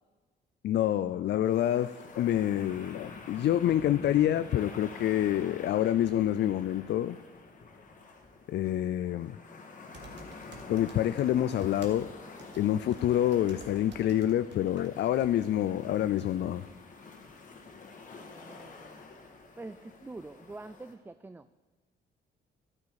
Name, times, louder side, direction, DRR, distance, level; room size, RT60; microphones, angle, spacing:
voice 1, 0.6-7.2 8.5-9.4 10.7-12.1 12.6-16.6, left 11 dB, 60° left, 13 dB, 0.4 m, -27 dB
sound 1, 1.4-20.9, left 4 dB, 40° left, 1.8 m, -48 dB
sound 2, 9.9-11.3 11.5-14.9 15.2-15.3, right 4 dB, 60° right, 1.9 m, -50 dB
voice 2, 18.2-19.0 19.6-21.5, right 2 dB, 10° right, 12 dB, 0.3 m, -46 dB
12.0 x 9.8 x 4.8 m, 1.4 s
cardioid pair, 90°, 20 cm